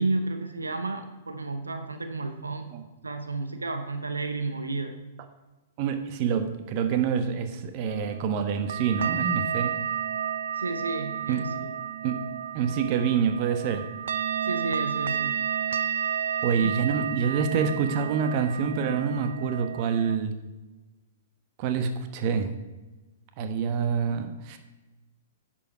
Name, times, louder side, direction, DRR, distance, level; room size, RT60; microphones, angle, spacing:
voice 1, 0.0-2.7 3.0-5.0 10.5-11.7 14.4-15.4 16.6-16.7, right 3 dB, 85° right, 7 dB, 0.9 m, -31 dB
voice 2, 5.8-9.8 11.3-11.4 12.0-12.2 12.5-13.8 16.4-20.3 21.6-22.5 23.4-24.6, right 6 dB, 40° right, 8 dB, 1.2 m, -26 dB
sound 1, 7.8-20.2, right 9 dB, 65° right, 0.5 m, -31 dB
10.5 x 7.5 x 4.6 m, 1.1 s
figure-of-eight pair, 110°, 0 cm